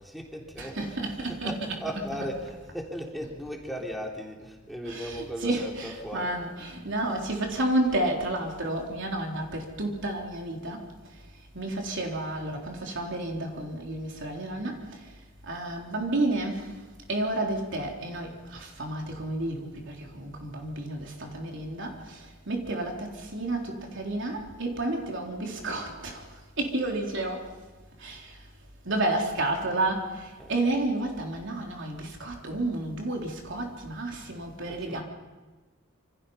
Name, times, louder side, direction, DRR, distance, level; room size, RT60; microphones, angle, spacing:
voice 1, 0.0-1.0 1.3-6.4 30.4-30.6 34.6-35.0, equal, ahead, -1 dB, 3.4 m, -37 dB
voice 2, 0.6-1.8 2.1-2.3 4.9-10.8 11.5-14.8 15.4-16.7 17.1-26.2 26.6-27.4 28.0-28.3 28.9-35.0, right 2 dB, 60° right, 1 dB, 3.8 m, -31 dB
27.5 x 26.0 x 5.7 m, 1.2 s
head